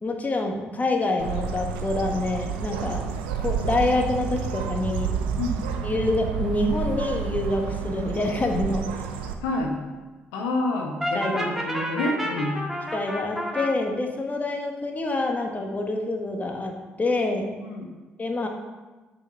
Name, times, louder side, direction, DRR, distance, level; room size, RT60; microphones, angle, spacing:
voice 1, 0.0-3.1 3.4-5.2 5.8-8.9 11.1-11.5 12.9-17.5 18.2-18.5, left 2 dB, 30° left, 3 dB, 1.5 m, -26 dB
Bird, 1.2-9.3, right 7 dB, 80° right, 0.6 m, -30 dB
voice 2, 5.4-5.7 9.4-9.7 10.3-12.6 17.6-17.9, left 2 dB, 75° left, 2 dB, 1.2 m, -28 dB
Brass instrument, 11.0-13.7, equal, 5° right, 1.9 m, -29 dB
6.9 x 6.0 x 5.8 m, 1.2 s
hypercardioid pair, 45°, 5 cm